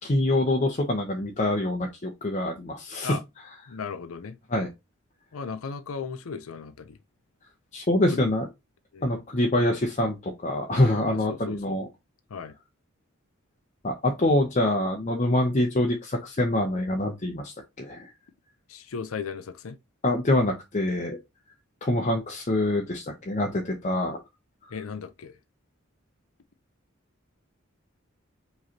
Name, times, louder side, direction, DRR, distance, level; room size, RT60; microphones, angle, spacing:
voice 1, 0.0-3.2 4.5-4.7 7.7-8.4 9.0-11.9 13.8-18.1 20.0-21.2 21.8-24.2, left 1 dB, 35° left, 0.7 m, -25 dB
voice 2, 3.7-4.4 5.3-7.0 8.1-8.3 8.9-9.2 11.1-11.8 12.3-12.5 18.7-19.8 24.7-25.4, left 5 dB, 90° left, 0.5 m, -36 dB
4.9 x 3.2 x 2.8 m
head